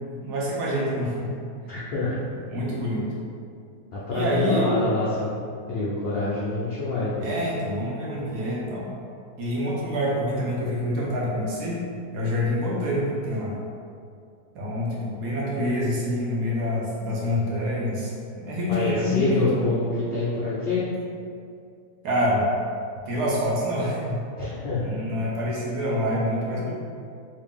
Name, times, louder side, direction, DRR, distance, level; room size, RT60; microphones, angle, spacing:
voice 1, 0.0-1.3 2.5-3.1 4.1-4.8 7.2-8.9 9.4-11.8 12.1-13.5 14.5-18.1 18.4-19.7 22.0-22.5 23.1-24.2 24.8-26.7, equal, 80° right, -4 dB, 1.3 m, -26 dB
voice 2, 1.7-2.2 3.9-5.4 5.7-7.3 18.7-20.8 24.4-24.9, left 3 dB, 70° left, -7 dB, 0.5 m, -26 dB
3.3 x 2.6 x 3.4 m, 2.4 s
omnidirectional pair, 1.7 m